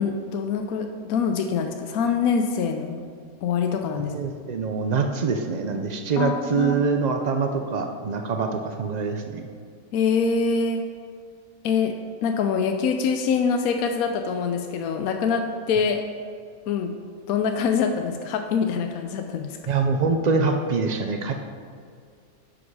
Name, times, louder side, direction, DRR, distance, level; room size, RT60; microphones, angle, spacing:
voice 1, 0.0-3.0 3.4-4.1 6.2-6.8 9.9-10.8 11.6-11.9 12.2-16.0 16.7-16.9 17.3-19.5, left 6 dB, 80° left, 5 dB, 1.1 m, -24 dB
voice 2, 3.9-9.4 19.7-21.3, right 4 dB, 85° right, 5 dB, 0.3 m, -24 dB
9.8 x 5.3 x 4.8 m, 2.2 s
omnidirectional pair, 1.5 m